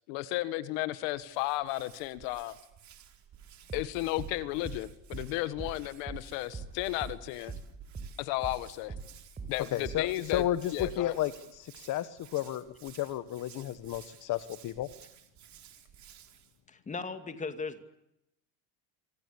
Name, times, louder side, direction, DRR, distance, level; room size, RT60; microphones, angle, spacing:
voice 1, 0.1-2.6 3.7-7.5 8.2-8.9 9.5-10.4 10.7-11.2, left 17 dB, 60° left, 14 dB, 1.7 m, -34 dB
Hands, 1.1-16.6, right 10 dB, 35° right, 4.7 m, -56 dB
sound 1, 3.7-8.6 8.9-11.1, right 4 dB, 15° right, 5.0 m, -42 dB
voice 2, 9.7-14.9, left 13 dB, 40° left, 13 dB, 1.4 m, -33 dB
voice 3, 16.7-17.8, left 4 dB, 15° left, 9 dB, 2.5 m, -37 dB
27.0 x 26.0 x 8.6 m, 0.81 s
cardioid pair, 150°, 49 cm